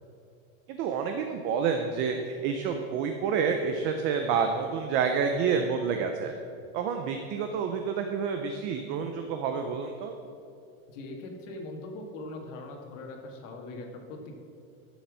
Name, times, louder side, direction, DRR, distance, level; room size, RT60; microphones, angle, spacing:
voice 1, 0.7-6.3 6.7-10.1, right 6 dB, 30° right, 5 dB, 0.5 m, -29 dB
voice 2, 10.9-14.4, left 2 dB, 60° left, 2 dB, 2.0 m, -41 dB
12.0 x 7.2 x 6.2 m, 2.5 s
supercardioid pair, 170°, 42 cm